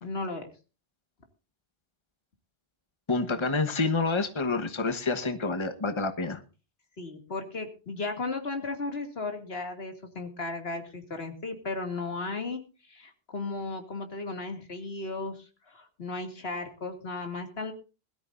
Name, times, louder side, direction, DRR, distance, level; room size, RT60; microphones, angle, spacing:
voice 1, 0.0-0.5 7.0-17.7, left 3 dB, 75° left, 6 dB, 2.5 m, -35 dB
voice 2, 3.1-6.4, left 3 dB, 30° left, 7 dB, 1.3 m, -28 dB
21.0 x 13.5 x 2.6 m, 0.33 s
omnidirectional pair, 1.0 m